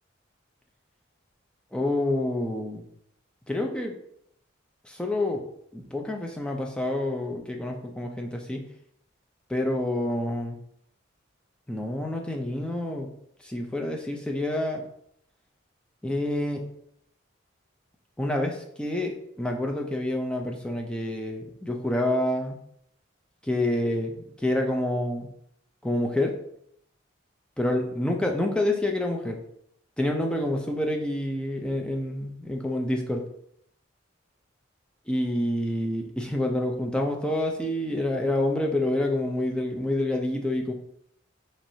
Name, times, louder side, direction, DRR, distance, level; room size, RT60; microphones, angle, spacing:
voice 1, 1.7-2.8 3.5-3.9 4.8-5.4 5.7-8.6 9.5-10.6 11.7-13.1 13.4-14.8 16.0-16.7 18.2-22.6 23.4-25.3 25.8-26.4 27.6-29.4 30.0-33.2 35.1-40.7, left 1 dB, 5° left, 1 dB, 0.4 m, -28 dB
4.5 x 3.1 x 2.7 m, 0.72 s
head